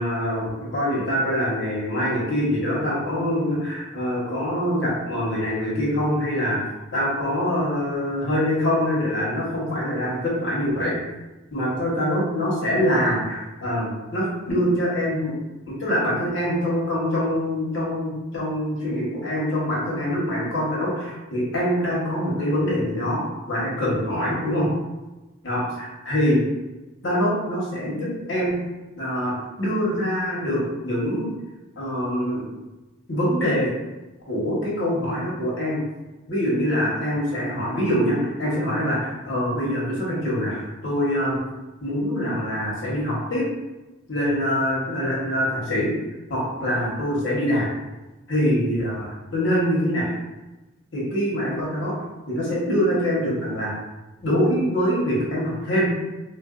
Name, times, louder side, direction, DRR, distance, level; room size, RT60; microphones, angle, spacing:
voice 1, 0.0-6.6 6.9-11.0 11.5-15.3 15.7-24.7 25.4-26.4 27.0-28.6 29.0-31.3 31.8-32.4 33.1-33.7 34.3-35.8 36.3-41.4 41.8-43.4 44.1-45.9 46.3-47.7 48.3-50.1 50.9-51.9 52.3-53.7 54.2-55.9, equal, 65° left, -6 dB, 1.1 m, -24 dB
3.5 x 2.5 x 2.5 m, 1.1 s
head